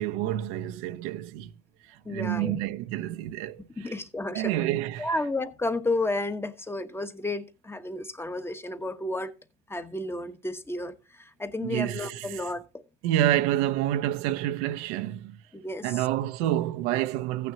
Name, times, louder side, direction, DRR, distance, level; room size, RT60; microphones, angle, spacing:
voice 1, 0.0-1.5 1.8-3.9 4.3-5.1 11.6-12.4 13.0-15.4 15.8-17.5, right 13 dB, 70° right, 1.0 m, -28 dB
voice 2, 2.0-2.6 3.8-4.5 5.0-9.4 9.7-12.8 15.5-16.1, left 2 dB, 5° left, 1.1 m, -32 dB
15.5 x 9.4 x 2.8 m
supercardioid pair, 125°, 34 cm